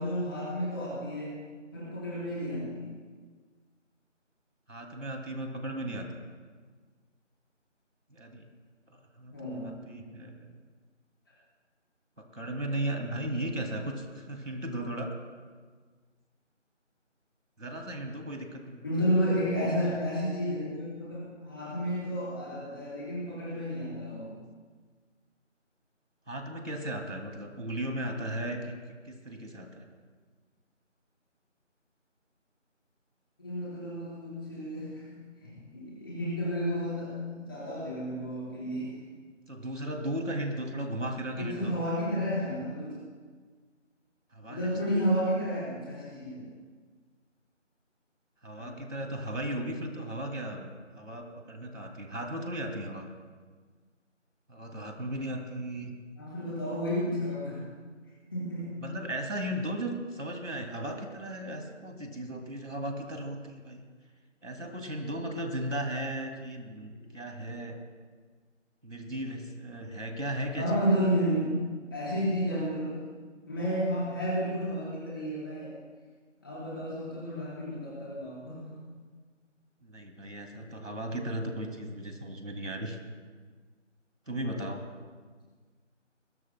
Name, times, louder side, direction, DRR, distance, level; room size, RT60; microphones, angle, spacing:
voice 1, 0.0-1.4 1.7-2.9 9.3-9.8 10.1-10.2 18.8-24.4 33.4-38.9 41.4-43.0 44.5-46.5 48.6-48.7 56.2-57.7 58.3-58.7 70.6-71.5 71.9-73.0 73.5-75.7 76.4-78.8, equal, 20° left, -8 dB, 4.3 m, -31 dB
voice 2, 4.7-6.2 8.1-8.5 8.9-9.3 9.6-10.5 12.3-15.1 17.6-18.9 26.3-28.7 29.0-29.9 39.5-41.7 44.3-45.0 48.4-53.1 54.5-55.9 58.8-63.8 64.4-67.8 68.8-70.8 79.8-83.0 84.3-84.8, right 1 dB, 80° right, 3 dB, 2.6 m, -36 dB
21.0 x 18.0 x 2.2 m, 1.5 s
figure-of-eight pair, 170°, 37 cm